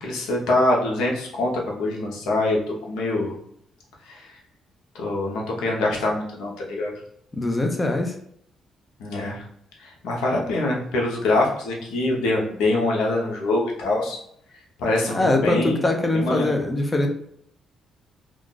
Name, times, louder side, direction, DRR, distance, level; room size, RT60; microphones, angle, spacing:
voice 1, 0.0-3.3 4.1-4.2 4.9-6.9 9.0-9.4 9.8-14.2 14.8-15.8 16.1-16.5, left 2 dB, 90° left, -1 dB, 0.9 m, -24 dB
voice 2, 7.3-8.1 15.1-17.1, left 2 dB, 25° left, 4 dB, 0.6 m, -22 dB
2.4 x 2.4 x 3.8 m, 0.69 s
cardioid pair, 90°, 0 cm